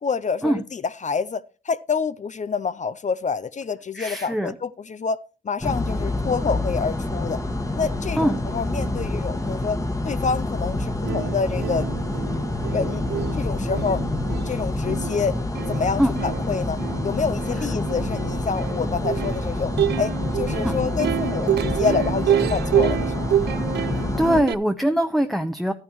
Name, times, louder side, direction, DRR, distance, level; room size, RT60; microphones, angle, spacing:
voice 1, 0.0-5.2 5.4-7.4 7.8-9.8 10.0-11.9 12.7-13.0 13.4-14.0 14.5-15.3 15.7-23.1, left 5 dB, 40° left, 0.6 m, -27 dB
voice 2, 3.9-4.5 8.2-8.4 16.0-16.1 20.6-20.8 23.9-25.7, equal, ahead, 0.8 m, -22 dB
sound 1, 5.6-24.4, left 2 dB, 20° left, 1.5 m, -27 dB
Plucked string instrument, 10.7-10.8 11.0-24.5, right 10 dB, 65° right, 0.5 m, -28 dB
12.5 x 9.6 x 3.1 m
supercardioid pair, 55°, 18 cm